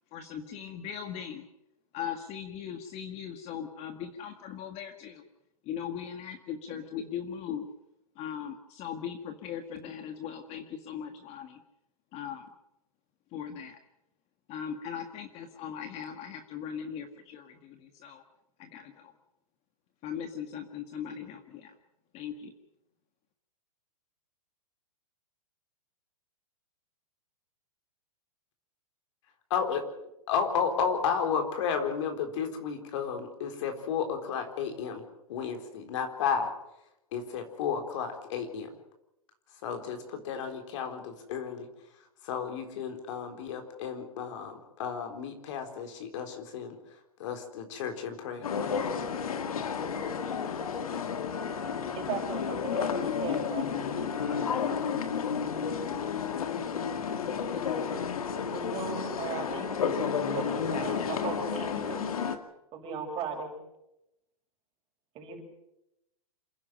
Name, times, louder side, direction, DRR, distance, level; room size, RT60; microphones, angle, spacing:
voice 1, 0.1-1.5 1.9-5.2 5.7-7.7 8.2-11.6 12.1-12.5 13.3-13.8 14.5-18.2 18.6-19.1 20.0-21.7 22.1-22.5, left 8 dB, 35° left, 7 dB, 1.9 m, -39 dB
voice 2, 29.5-29.8 30.3-35.0 35.3-36.5 37.1-38.7 39.6-41.7 42.2-46.8 47.2-48.5, left 6 dB, 55° left, 5 dB, 4.0 m, -32 dB
sound 1, 48.4-62.4, left 6 dB, 75° left, 2.1 m, -31 dB
voice 3, 52.0-53.8 58.5-59.8 60.3-62.0 62.7-63.6 65.1-65.4, right 6 dB, 30° right, 2 dB, 6.3 m, -37 dB
28.0 x 11.0 x 9.1 m, 0.88 s
hypercardioid pair, 125°, 18 cm